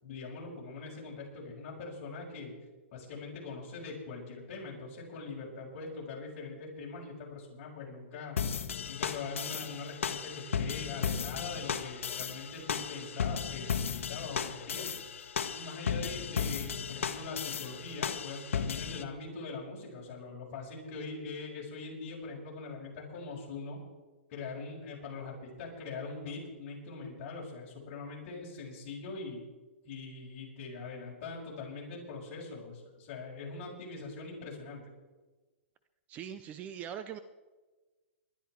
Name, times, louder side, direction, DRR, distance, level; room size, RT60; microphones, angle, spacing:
voice 1, 0.0-2.5 2.9-8.4 8.8-14.9 15.5-23.8 24.3-29.4 29.8-34.8, left 4 dB, 40° left, -3 dB, 6.4 m, -42 dB
sound 1, 8.4-19.0, left 7 dB, 85° left, 1.3 m, -35 dB
voice 2, 36.1-37.2, right 9 dB, 20° right, 12 dB, 0.6 m, -41 dB
20.0 x 12.5 x 4.7 m, 1.3 s
hypercardioid pair, 155°, 7 cm